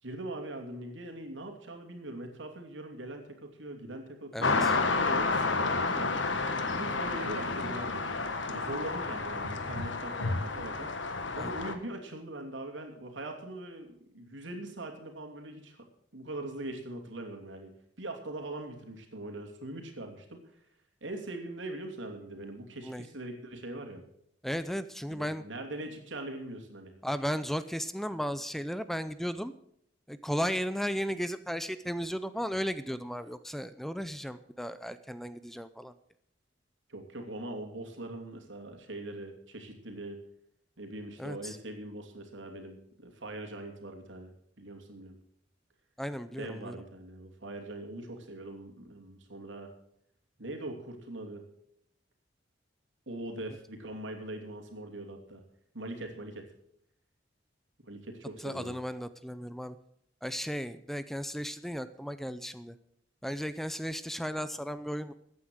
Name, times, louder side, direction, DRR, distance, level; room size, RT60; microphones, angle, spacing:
voice 1, 0.0-6.2 6.7-8.1 8.5-10.9 11.3-15.8 16.1-20.4 21.0-24.0 25.1-26.9 36.9-40.2 40.8-44.3 44.6-45.2 46.4-49.7 50.4-51.5 53.1-55.4 55.7-56.5 57.8-58.8, right 1 dB, 90° right, 4 dB, 2.9 m, -41 dB
voice 2, 4.3-4.8 11.4-11.5 22.8-23.0 24.4-25.4 27.0-29.5 30.1-35.9 41.2-41.6 46.0-46.7 58.4-59.8 60.2-62.8 63.2-65.1, equal, ahead, 13 dB, 0.5 m, -35 dB
sound 1, 4.4-11.7, left 3 dB, 90° left, 1.5 m, -30 dB
14.5 x 9.4 x 6.4 m, 0.70 s
head